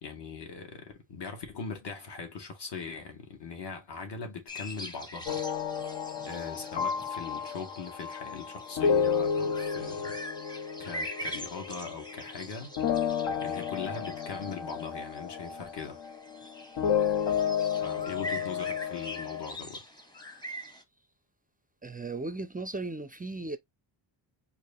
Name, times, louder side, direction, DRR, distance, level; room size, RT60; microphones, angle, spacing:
voice 1, 0.0-5.5 6.2-10.2 10.8-12.8 13.4-16.0 17.8-19.8, left 5 dB, 60° left, 2.0 m, -40 dB
sound 1, 4.5-20.8, equal, 10° left, 0.8 m, -44 dB
sound 2, 5.3-12.5 12.8-19.5, left 7 dB, 75° left, 1.3 m, -32 dB
voice 2, 21.8-23.6, right 3 dB, 20° right, 0.4 m, -36 dB
4.7 x 3.0 x 2.7 m
wide cardioid pair, 150°, 47 cm